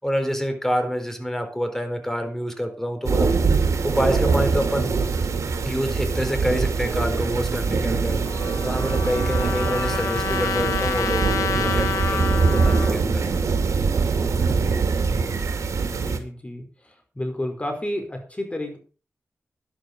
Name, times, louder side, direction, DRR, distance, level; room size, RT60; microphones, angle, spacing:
voice 1, 0.0-3.3 3.8-4.9 5.6-8.2 8.6-13.2, equal, 5° left, 6 dB, 4.2 m, -27 dB
sound 1, 3.0-16.2, right 4 dB, 85° right, 2.6 m, -23 dB
Trumpet, 8.2-12.9, left 7 dB, 90° left, 1.7 m, -28 dB
voice 2, 15.8-16.6 17.1-18.8, left 1 dB, 25° left, 5 dB, 4.8 m, -31 dB
11.5 x 11.5 x 5.3 m, 0.37 s
wide cardioid pair, 85°, 5 cm